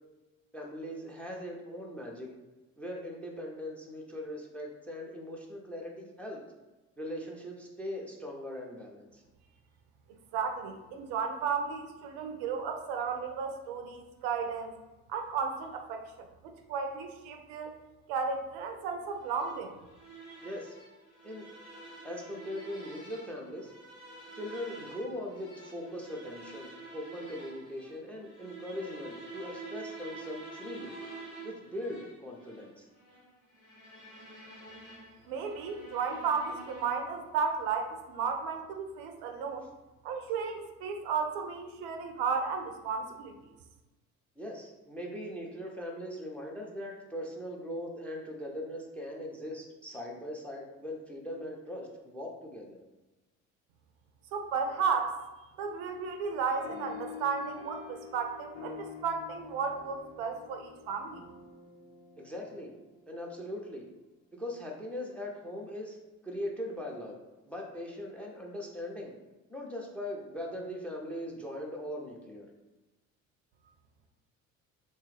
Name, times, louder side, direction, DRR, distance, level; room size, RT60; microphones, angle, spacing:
voice 1, 0.5-2.4 2.8-6.4 7.0-9.2 20.4-20.7 21.2-21.5 22.0-23.7 24.4-31.0 31.4-32.9 44.4-52.8 62.2-62.7 63.1-63.8 64.3-66.0 66.2-67.2 67.5-69.1 69.5-72.5, left 1 dB, 5° left, -1 dB, 0.5 m, -40 dB
voice 2, 10.3-14.8 15.1-17.8 18.1-19.7 35.3-39.7 40.0-43.4 54.3-55.2 55.6-61.2, right 5 dB, 60° right, 5 dB, 0.5 m, -34 dB
sound 1, 19.2-37.2, right 3 dB, 85° left, 1.1 m, -48 dB
sound 2, 56.6-63.5, left 6 dB, 65° left, 0.6 m, -47 dB
3.0 x 2.3 x 3.1 m, 1.1 s
figure-of-eight pair, 55°, 41 cm